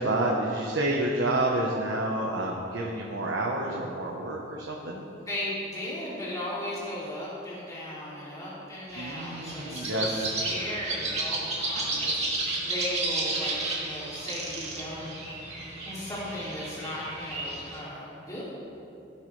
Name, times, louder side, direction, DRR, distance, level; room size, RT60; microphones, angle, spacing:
voice 1, 0.0-5.0 9.0-10.3, right 1 dB, 80° right, -2 dB, 1.2 m, -29 dB
voice 2, 5.3-12.2 12.6-15.1 15.8-18.4, left 1 dB, 20° left, -9 dB, 2.9 m, -36 dB
sound 1, 8.9-17.8, right 2 dB, 35° right, 2.5 m, -32 dB
16.5 x 11.0 x 3.4 m, 2.8 s
head